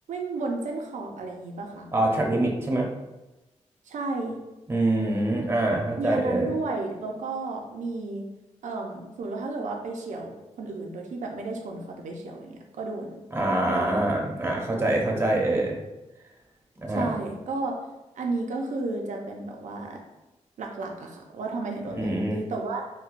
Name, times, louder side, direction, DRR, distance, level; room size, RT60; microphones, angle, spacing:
voice 1, 0.1-1.9 3.9-4.4 6.0-8.3 8.6-13.2 13.5-14.0 16.9-17.8 18.2-20.0 20.6-22.8, right 3 dB, 85° right, 1 dB, 0.5 m, -33 dB
voice 2, 1.9-2.9 4.7-6.5 13.3-15.8 16.8-17.1 22.0-22.4, right 1 dB, 20° right, -1 dB, 0.7 m, -25 dB
4.2 x 2.2 x 2.5 m, 1.0 s
cardioid pair, 85°, 12 cm